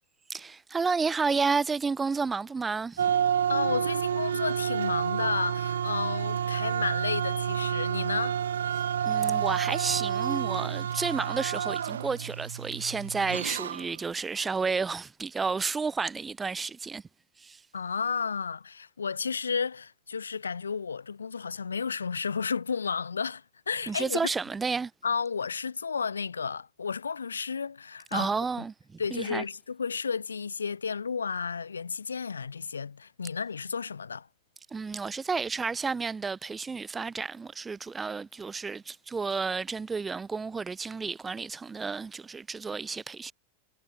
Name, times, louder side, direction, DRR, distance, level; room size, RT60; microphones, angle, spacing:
voice 1, 0.3-3.1 9.0-17.0 17.4-17.6 23.9-24.9 28.1-28.7 29.1-29.4 34.7-43.3, right 4 dB, 15° right, 0.8 m, -31 dB
sound 1, 3.0-14.0, right 9 dB, 65° right, 0.4 m, -29 dB
voice 2, 3.5-8.4 17.7-24.2 25.0-28.3 29.0-34.3, left 5 dB, 75° left, 0.7 m, -32 dB
figure-of-eight pair, 90°, 0 cm